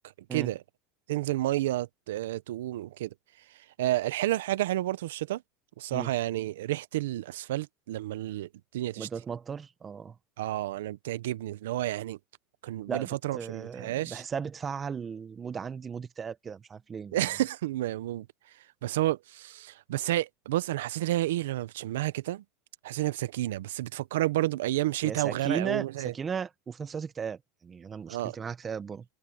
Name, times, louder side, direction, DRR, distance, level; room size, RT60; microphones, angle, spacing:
voice 1, 1.1-3.1 3.8-5.4 5.8-8.5 8.7-9.1 10.4-12.2 12.6-14.2 17.1-18.3 18.8-22.4 22.8-26.1 28.1-28.4, right 15 dB, 85° right, 0.7 m, -30 dB
voice 2, 9.0-10.1 12.9-17.2 25.0-29.0, right 6 dB, 25° right, 1.3 m, -36 dB
supercardioid pair, 115°, 0 cm